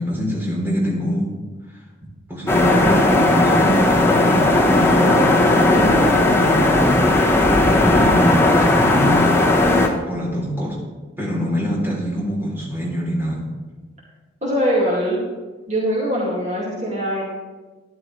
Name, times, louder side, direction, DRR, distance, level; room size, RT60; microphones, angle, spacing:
voice 1, 0.0-1.4 2.3-4.4 4.7-5.4 6.1-6.7 8.0-9.4 10.1-10.8 11.2-13.4, equal, 10° right, -5 dB, 3.3 m, -24 dB
sound 1, 2.5-9.9, left 2 dB, 10° left, 1.1 m, -16 dB
voice 2, 5.8-6.1 14.4-15.2 15.7-17.2, equal, 35° right, -6 dB, 2.3 m, -22 dB
13.0 x 11.0 x 3.3 m, 1.3 s
head